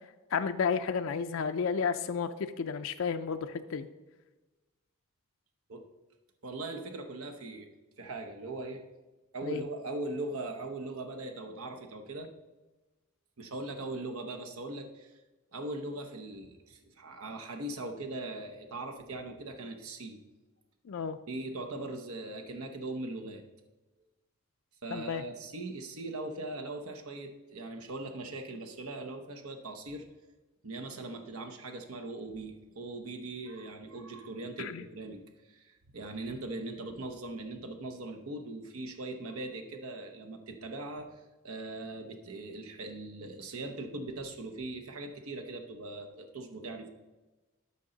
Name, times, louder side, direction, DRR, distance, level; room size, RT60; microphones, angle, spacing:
voice 1, 0.3-2.3 2.6-3.9 9.4-9.6 20.9-21.2 24.9-25.2 34.6-34.8, left 6 dB, 65° left, 8 dB, 0.4 m, -32 dB
voice 2, 6.4-7.7 8.0-8.8 9.3-12.3 13.4-15.1 15.5-20.2 21.3-23.4 24.8-30.0 30.6-41.1 41.4-46.9, right 2 dB, 80° right, 4 dB, 0.9 m, -40 dB
12.5 x 5.4 x 3.9 m, 1.2 s
head